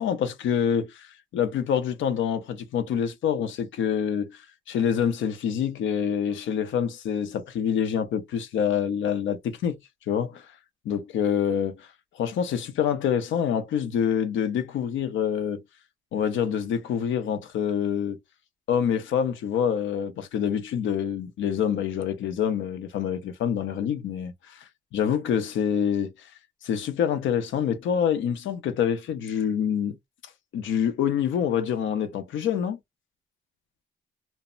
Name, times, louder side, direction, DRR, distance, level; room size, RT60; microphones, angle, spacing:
voice 1, 0.0-4.4 4.7-9.8 10.1-10.4 10.9-11.9 12.1-15.6 16.1-18.2 18.7-26.1 26.6-30.0 30.5-32.8, left 8 dB, 75° left, 0.6 m, -26 dB
2.1 x 2.1 x 3.6 m
cardioid pair, 90°, 20 cm